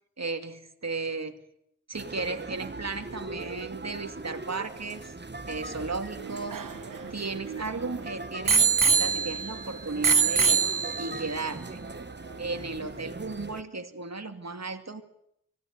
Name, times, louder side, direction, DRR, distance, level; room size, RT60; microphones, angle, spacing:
voice 1, 0.2-1.4 1.9-5.1 5.5-6.6 7.1-10.6 11.0-11.8 12.4-15.0, right 3 dB, 55° right, 6 dB, 2.3 m, -35 dB
sound 1, 1.9-13.6, right 2 dB, 35° right, 1.2 m, -41 dB
Bicycle bell, 6.2-7.8 8.5-9.6 10.0-11.3 12.0-12.1, right 5 dB, 80° right, 1.0 m, -24 dB
25.5 x 16.5 x 9.5 m, 0.76 s
wide cardioid pair, 70°, 32 cm